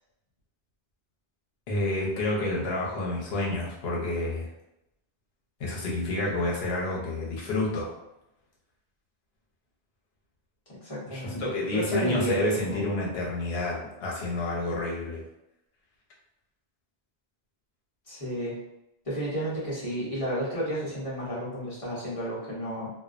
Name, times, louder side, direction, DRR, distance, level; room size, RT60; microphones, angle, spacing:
voice 1, 1.7-4.5 5.6-7.9 11.1-15.2, left 2 dB, 75° left, -4 dB, 0.9 m, -29 dB
voice 2, 10.8-12.8 18.1-18.6 19.0-22.9, equal, 35° left, -9 dB, 0.9 m, -32 dB
2.4 x 2.1 x 2.4 m, 0.87 s
omnidirectional pair, 1.1 m